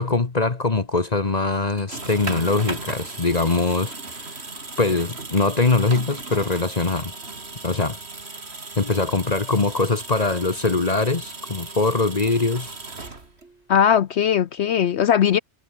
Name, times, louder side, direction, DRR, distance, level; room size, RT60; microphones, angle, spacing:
voice 1, 0.0-4.3 4.8-7.1 7.6-8.0 8.8-12.7, left 3 dB, 35° left, 1.4 m, -22 dB
sound 1, 1.7-13.6, right 3 dB, 60° right, 3.2 m, -36 dB
voice 2, 13.7-15.4, left 8 dB, 70° left, 1.0 m, -19 dB
omnidirectional pair, 1.2 m